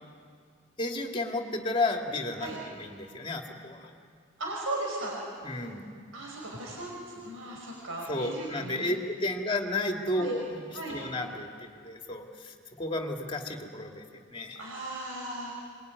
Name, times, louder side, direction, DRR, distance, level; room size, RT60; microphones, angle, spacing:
voice 1, 0.8-3.9 5.4-5.9 8.1-10.6 10.9-14.6, left 2 dB, 25° left, 2 dB, 2.5 m, -32 dB
voice 2, 4.4-5.2 6.1-9.0 10.2-10.3 10.7-11.0 14.6-15.5, right 2 dB, 75° right, -1 dB, 5.3 m, -37 dB
27.0 x 22.0 x 9.7 m, 2.1 s
head